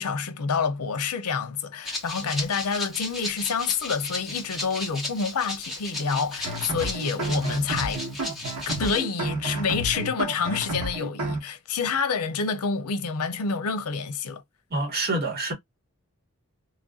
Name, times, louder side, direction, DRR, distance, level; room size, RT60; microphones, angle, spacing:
voice 1, 0.0-8.0 8.8-14.4, left 5 dB, 80° left, 0.6 m, -28 dB
Rattle (instrument), 1.8-9.0, left 2 dB, ahead, 0.9 m, -35 dB
sound 1, 6.4-11.4, right 2 dB, 80° right, 1.1 m, -31 dB
voice 2, 14.7-15.5, right 2 dB, 45° right, 1.1 m, -26 dB
3.1 x 2.5 x 2.3 m
head